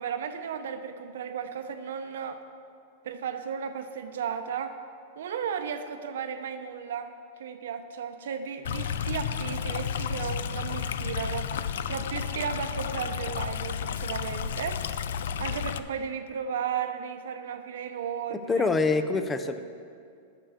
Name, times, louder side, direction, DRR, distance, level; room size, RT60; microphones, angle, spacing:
voice 1, 0.0-2.4 3.0-4.8 5.2-7.1 7.4-11.5 11.8-14.8 15.4-18.7, right 7 dB, 85° right, 8 dB, 0.8 m, -34 dB
Stream, 8.6-15.8, left 8 dB, 85° left, 0.4 m, -32 dB
voice 2, 18.3-19.6, left 3 dB, 10° left, 9 dB, 0.4 m, -25 dB
9.0 x 6.8 x 6.6 m, 2.4 s
supercardioid pair, 160°, 0 cm